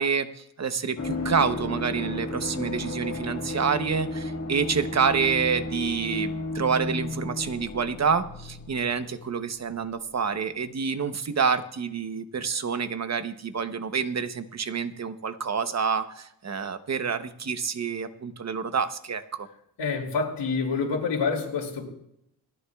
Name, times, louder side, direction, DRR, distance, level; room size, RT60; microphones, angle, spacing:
voice 1, 0.0-19.5, right 6 dB, 40° right, 10 dB, 0.9 m, -28 dB
sound 1, 1.0-9.5 9.7-9.8, left 2 dB, 35° left, 1.7 m, -34 dB
voice 2, 19.8-21.9, left 4 dB, 85° left, 0 dB, 2.6 m, -27 dB
28.0 x 9.8 x 2.3 m, 0.73 s
wide cardioid pair, 125°, 42 cm